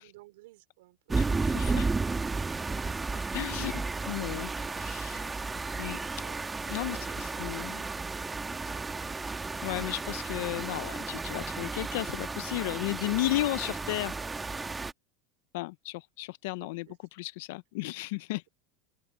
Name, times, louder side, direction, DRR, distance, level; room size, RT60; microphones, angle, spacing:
voice 1, 0.0-1.2 6.2-6.5 6.9-8.2 16.6-17.0, right 19 dB, 80° right, 4.4 m, -55 dB
sound 1, 1.1-14.9, right 3 dB, 10° right, 1.3 m, -33 dB
voice 2, 1.2-1.9 3.3-4.5 4.8-5.3 5.8-6.0 6.7-7.8 9.6-14.1 15.5-18.5, left 19 dB, 70° left, 0.5 m, -34 dB
supercardioid pair, 140°, 0 cm